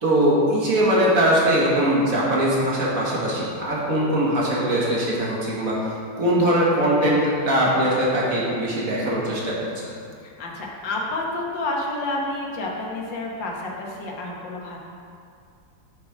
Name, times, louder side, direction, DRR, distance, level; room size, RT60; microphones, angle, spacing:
voice 1, 0.0-9.9, right 1 dB, 50° right, -5 dB, 2.0 m, -21 dB
voice 2, 10.2-14.8, left 2 dB, 80° left, -1 dB, 2.0 m, -29 dB
8.4 x 7.6 x 5.0 m, 2.4 s
omnidirectional pair, 2.0 m